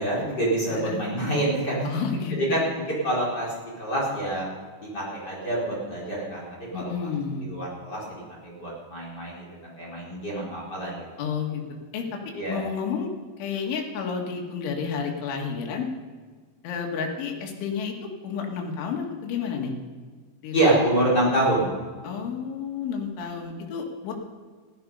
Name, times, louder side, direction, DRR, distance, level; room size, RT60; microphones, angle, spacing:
voice 1, 0.0-1.9 2.4-4.5 4.8-6.9 7.5-11.2 12.3-12.6 20.5-21.7, right 1 dB, 25° left, -5 dB, 4.2 m, -26 dB
voice 2, 0.7-1.1 1.8-2.6 6.7-7.5 11.2-11.6 11.9-12.2 12.5-13.1 13.4-15.9 16.6-19.7 20.4-20.8 22.0-24.1, left 6 dB, 90° left, 1 dB, 4.2 m, -31 dB
16.0 x 13.5 x 5.4 m, 1.5 s
omnidirectional pair, 5.3 m